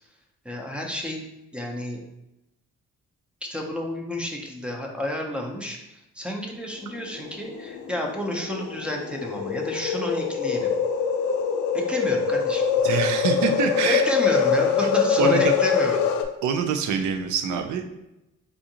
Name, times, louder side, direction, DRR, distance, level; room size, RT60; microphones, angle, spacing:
voice 1, 0.4-1.3 1.5-2.0 3.4-10.7 11.7-12.6 13.8-16.0, equal, 5° right, 0 dB, 0.6 m, -30 dB
sound 1, 7.2-16.2, left 6 dB, 75° left, 0.5 m, -24 dB
voice 2, 12.8-14.0 14.8-14.9 15.2-15.5 16.4-17.9, right 6 dB, 75° right, 6 dB, 0.5 m, -25 dB
3.6 x 2.5 x 2.8 m, 0.89 s
cardioid pair, 90°, 30 cm